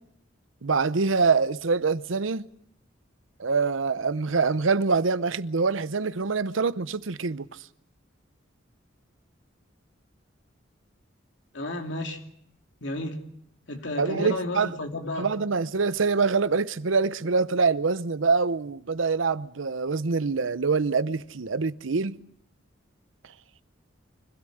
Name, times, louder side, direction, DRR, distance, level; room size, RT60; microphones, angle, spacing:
voice 1, 0.6-2.4 3.4-7.5 14.0-14.7 15.2-22.2, right 4 dB, 90° right, 0.8 m, -25 dB
voice 2, 11.5-12.2 12.8-13.2 13.7-15.3, left 1 dB, 70° left, 2.7 m, -32 dB
25.0 x 16.5 x 7.9 m
head